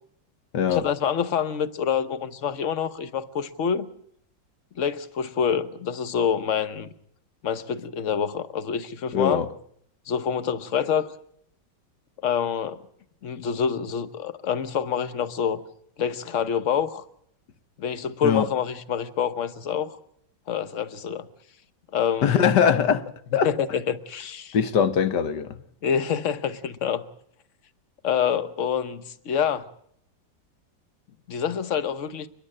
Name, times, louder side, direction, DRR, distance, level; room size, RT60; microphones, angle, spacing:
voice 1, 0.7-3.9 4.7-6.9 7.4-9.4 10.1-11.1 12.2-12.8 13.2-15.6 16.0-17.0 17.8-20.0 20.5-21.3 21.9-22.4 23.4-24.6 25.8-27.1 28.0-29.7 31.3-32.3, left 7 dB, 45° left, 1.2 m, -26 dB
voice 2, 9.1-9.5 18.2-18.5 22.2-23.0 23.3-23.5 24.5-25.6, left 7 dB, 65° left, 1.6 m, -21 dB
29.5 x 11.0 x 8.7 m
omnidirectional pair, 2.0 m